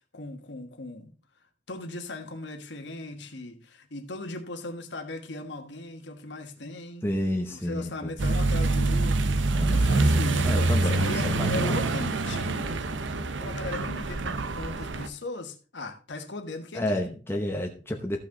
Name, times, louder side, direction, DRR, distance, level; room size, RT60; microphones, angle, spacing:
voice 1, 0.1-1.1 1.7-7.1 7.5-12.8 13.4-17.0, left 2 dB, 70° left, 1.5 m, -38 dB
voice 2, 7.0-7.9 9.4-10.1 10.4-11.8 16.7-18.2, left 1 dB, 15° left, 1.0 m, -30 dB
Accelerating revving vroom, 8.2-15.1, right 2 dB, 80° right, 0.8 m, -25 dB
14.0 x 6.0 x 3.8 m
head